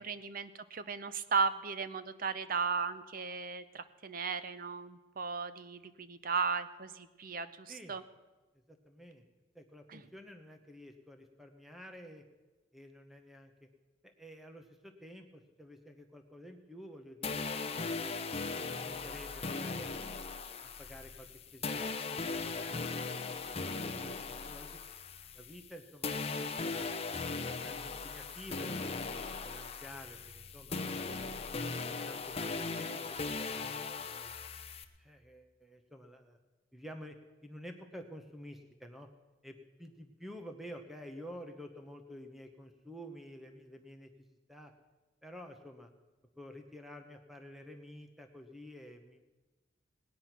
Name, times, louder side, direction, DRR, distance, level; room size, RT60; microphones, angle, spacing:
voice 1, 0.0-8.0 9.9-10.0, right 5 dB, 50° right, 12 dB, 0.8 m, -36 dB
voice 2, 8.7-9.2 9.5-12.2 12.7-13.5 14.0-18.0 18.5-19.9 20.6-23.4 23.6-24.8 25.3-26.9 27.4-30.8 31.9-34.4 35.0-36.4 36.7-37.2 37.4-39.1 39.4-44.1 44.5-44.7 45.2-45.9 46.4-49.2, equal, ahead, 4 dB, 0.9 m, -50 dB
sound 1, 17.2-25.7 26.0-34.8, left 4 dB, 35° left, 0.9 m, -38 dB
19.5 x 9.7 x 5.9 m, 1.2 s
head